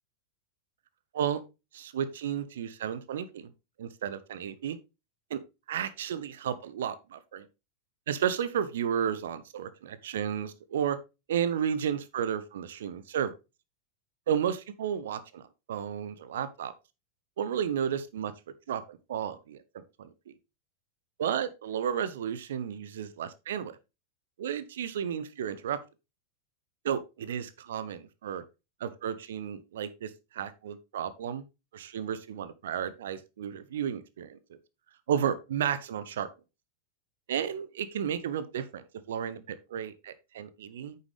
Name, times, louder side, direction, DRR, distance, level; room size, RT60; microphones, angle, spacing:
voice 1, 1.7-3.5 3.8-4.8 5.3-5.4 5.7-7.5 8.1-11.0 11.3-13.3 14.3-15.4 15.7-16.7 17.4-18.3 18.7-20.3 21.2-23.7 24.4-25.8 26.8-28.4 28.8-31.4 31.7-34.4 35.1-36.3 37.3-41.0, right 8 dB, 60° right, 0.9 m, -33 dB
9.2 x 6.8 x 3.2 m
figure-of-eight pair, 90°, 0 cm